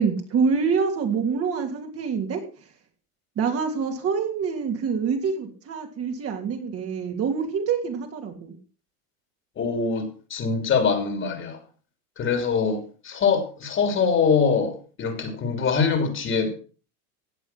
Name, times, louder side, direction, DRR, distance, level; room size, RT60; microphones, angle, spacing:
voice 1, 0.0-2.4 3.4-8.6, right 5 dB, 35° right, 3.0 m, -26 dB
voice 2, 9.6-11.6 12.2-16.5, left 5 dB, 30° left, 3.1 m, -23 dB
17.0 x 7.8 x 6.0 m
supercardioid pair, 150°, 42 cm